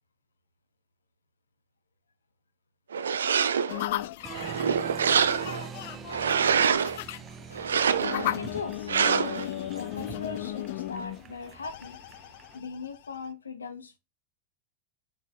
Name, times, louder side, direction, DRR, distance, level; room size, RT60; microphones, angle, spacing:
sound 1, 2.9-3.8 4.3-5.7 6.1-7.0 7.6-8.3 8.9-9.5, right 7 dB, 70° right, 0.5 m, -25 dB
sound 2, 3.7-13.3, left 14 dB, 55° left, 0.4 m, -36 dB
Applause, 4.2-12.6, right 7 dB, 25° right, 0.6 m, -44 dB
voice 1, 8.0-12.3 12.5-14.0, left 5 dB, 75° left, 1.0 m, -40 dB
6.3 x 4.6 x 3.9 m
figure-of-eight pair, 90°, 0 cm